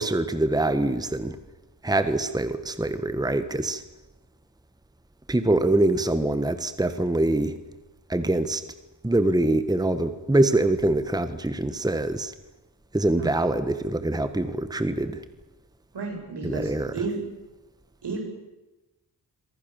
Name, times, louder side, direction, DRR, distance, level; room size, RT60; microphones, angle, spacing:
voice 1, 0.0-1.4 1.8-3.8 5.3-7.6 8.1-8.6 9.0-12.3 12.9-15.2 16.4-16.9, right 2 dB, 10° right, 11 dB, 1.4 m, -24 dB
voice 2, 13.2-13.5 15.9-17.2 18.0-18.2, right 3 dB, 75° right, 3 dB, 7.9 m, -32 dB
27.5 x 24.5 x 7.1 m, 1.0 s
wide cardioid pair, 135°, 41 cm